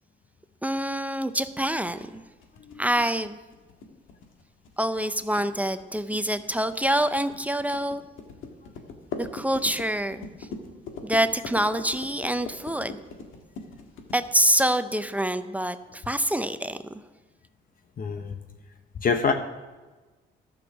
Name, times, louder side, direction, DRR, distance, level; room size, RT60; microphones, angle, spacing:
voice 1, 0.6-2.2 2.8-3.4 4.8-8.0 9.2-10.3 11.0-13.0 14.1-17.0, right 1 dB, 5° right, 11 dB, 0.5 m, -26 dB
sound 1, 1.3-15.0, left 4 dB, 85° left, 1.5 m, -41 dB
voice 2, 18.0-18.4 19.0-19.3, left 5 dB, 45° left, 6 dB, 0.9 m, -26 dB
12.5 x 6.4 x 7.1 m, 1.2 s
cardioid pair, 90°, 20 cm